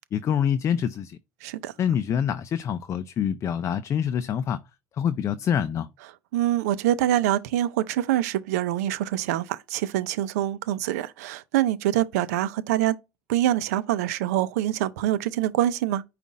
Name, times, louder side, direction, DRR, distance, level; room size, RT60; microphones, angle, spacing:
voice 1, 0.1-1.2 1.8-4.6 5.0-5.9, left 8 dB, 35° left, 0.4 m, -26 dB
voice 2, 1.4-1.7 6.3-12.9 13.3-16.0, right 13 dB, 85° right, 0.6 m, -25 dB
5.2 x 2.4 x 4.1 m
supercardioid pair, 105°, 8 cm